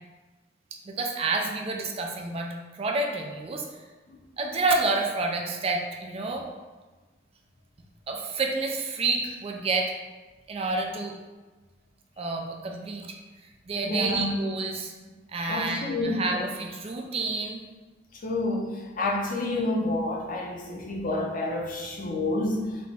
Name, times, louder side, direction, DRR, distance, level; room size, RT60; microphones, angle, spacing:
voice 1, 0.9-3.9 4.4-6.5 8.1-9.9 10.5-11.1 12.2-13.2 13.7-14.9 15.3-17.6, right 3 dB, 35° right, 2 dB, 0.3 m, -29 dB
voice 2, 13.8-14.3 15.5-16.4 18.2-22.7, left 2 dB, 50° left, -1 dB, 0.6 m, -29 dB
4.1 x 2.1 x 3.4 m, 1.2 s
head